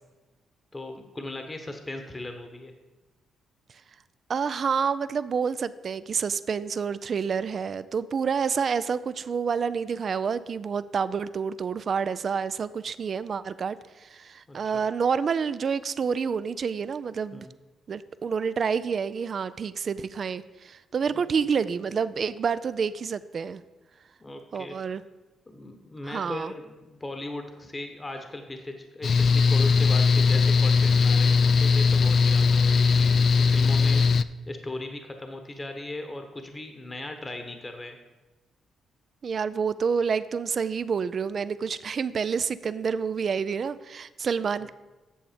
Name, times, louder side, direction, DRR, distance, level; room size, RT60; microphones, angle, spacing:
voice 1, 0.7-2.7 14.5-14.8 17.3-17.5 21.1-21.2 24.2-24.8 25.5-38.0 44.6-44.7, left 2 dB, 25° left, 6 dB, 1.0 m, -38 dB
voice 2, 4.3-17.5 17.9-23.6 24.5-25.0 26.1-26.5 39.2-44.7, right 6 dB, 55° right, 15 dB, 0.4 m, -28 dB
Mechanical fan, 29.0-34.2, left 5 dB, 55° left, 0.3 m, -20 dB
8.6 x 6.9 x 5.0 m, 1.2 s
supercardioid pair, 55°, 0 cm